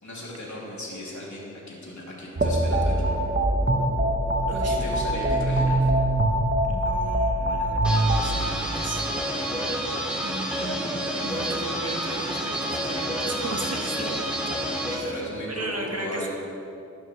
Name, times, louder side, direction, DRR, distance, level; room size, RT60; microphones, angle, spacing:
voice 1, 0.0-3.2 4.5-5.9 15.0-16.3, left 1 dB, 75° left, -5 dB, 3.0 m, -36 dB
sound 1, 2.4-8.2, right 1 dB, 35° right, 1.2 m, -23 dB
voice 2, 4.5-4.8 6.7-9.6 10.2-11.0 11.2-14.3 14.9-16.3, right 2 dB, 55° right, 1 dB, 1.6 m, -36 dB
sound 2, 7.8-15.0, right 1 dB, 5° right, 2.3 m, -29 dB
13.5 x 11.0 x 3.3 m, 2.6 s
wide cardioid pair, 70°, 30 cm